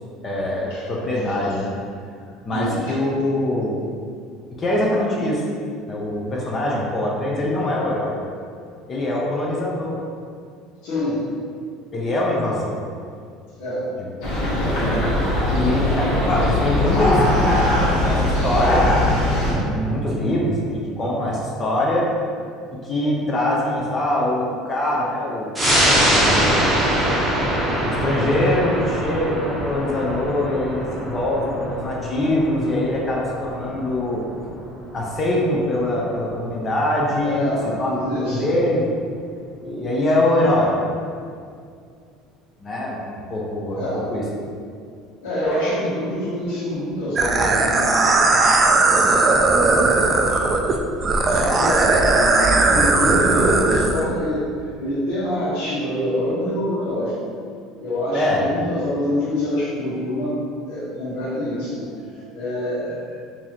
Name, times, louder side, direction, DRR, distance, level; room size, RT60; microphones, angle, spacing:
voice 1, 0.2-1.7 2.5-3.9 4.6-5.4 5.9-8.2 8.9-10.0 11.9-12.8 14.5-15.0 15.5-19.0 19.6-22.1 22.7-25.5 26.1-26.6 27.8-34.2 34.9-37.5 37.8-37.9 38.2-39.0 39.6-40.7 42.6-43.0 43.3-44.2 58.1-58.4, left 1 dB, 30° left, -3 dB, 0.6 m, -23 dB
voice 2, 2.5-2.9 10.8-11.3 13.6-13.9 37.2-38.5 43.7-44.1 45.2-48.9 49.6-50.4 51.3-57.1 57.8-60.3 60.6-63.2, left 1 dB, 80° left, -12 dB, 1.2 m, -26 dB
sound 1, 14.2-19.5, left 1 dB, 65° left, 1.5 m, -20 dB
sound 2, 25.5-36.5 36.9-37.0, right 1 dB, 5° right, 0.9 m, -23 dB
sound 3, 47.2-54.0, right 3 dB, 25° right, 0.3 m, -17 dB
4.5 x 2.7 x 2.9 m, 2.3 s
cardioid pair, 130°, 0 cm